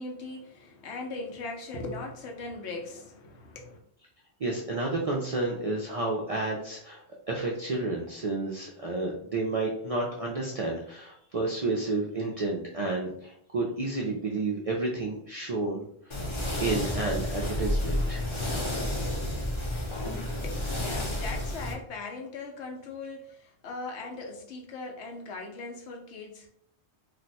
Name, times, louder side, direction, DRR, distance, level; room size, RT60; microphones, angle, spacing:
voice 1, 0.0-3.8 20.4-26.5, left 3 dB, 80° left, 1 dB, 1.0 m, -39 dB
voice 2, 4.4-16.2 16.6-18.3, right 2 dB, 55° right, -3 dB, 0.4 m, -31 dB
sound 1, 16.1-21.7, left 1 dB, 30° left, 0.6 m, -30 dB
2.5 x 2.2 x 4.0 m, 0.66 s
omnidirectional pair, 1.1 m